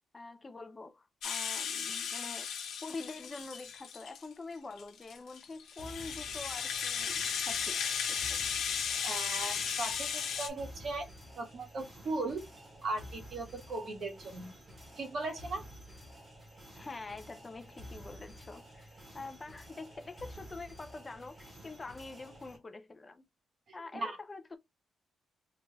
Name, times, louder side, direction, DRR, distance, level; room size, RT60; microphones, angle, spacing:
voice 1, 0.1-2.5 2.8-7.8 8.1-8.4 16.7-23.2 23.7-24.6, left 3 dB, 20° left, 0.4 m, -45 dB
Rattle (instrument), 1.2-4.3 4.8-10.5, left 7 dB, 80° left, 0.9 m, -35 dB
sound 1, 5.8-22.6, equal, 20° right, 1.5 m, -51 dB
voice 2, 9.0-11.1 11.4-12.4 12.8-14.5 15.0-15.6 23.9-24.2, right 3 dB, 45° right, 1.2 m, -38 dB
3.8 x 3.3 x 2.3 m
cardioid pair, 165°, 0 cm